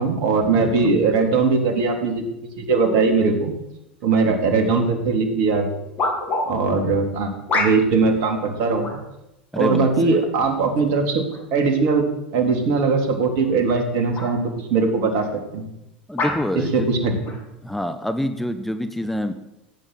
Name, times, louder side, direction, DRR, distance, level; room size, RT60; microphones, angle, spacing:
voice 1, 0.0-2.2 2.6-3.5 4.0-5.7 6.5-9.0 9.6-11.2 11.5-12.1 12.3-14.4 14.7-15.3 15.5-15.7 16.5-17.1, right 4 dB, 55° right, 5 dB, 3.5 m, -20 dB
voice 2, 0.6-1.0 9.5-10.2 16.1-16.9 17.6-19.3, left 1 dB, 5° left, 8 dB, 1.2 m, -27 dB
sound 1, 5.0-5.1 6.0-6.4 7.5-8.0 8.8-9.1 10.1-10.5 11.3-11.4 13.3-13.6 14.1-14.3 15.1-15.3 16.2-16.4 17.2-17.4, left 2 dB, 40° left, 6.8 m, -25 dB
17.0 x 8.9 x 7.9 m, 0.88 s
figure-of-eight pair, 80°, 6 cm